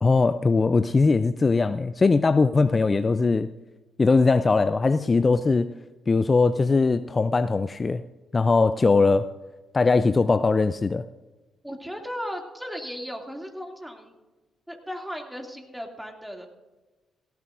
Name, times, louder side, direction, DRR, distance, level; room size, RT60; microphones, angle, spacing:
voice 1, 0.0-3.5 4.0-5.7 6.1-8.0 8.3-9.3 9.7-11.0, left 4 dB, 35° left, 12 dB, 0.4 m, -20 dB
voice 2, 11.6-14.1 14.7-16.5, equal, 5° right, 2 dB, 2.5 m, -36 dB
17.5 x 15.0 x 2.6 m, 1.2 s
hypercardioid pair, 45°, 0 cm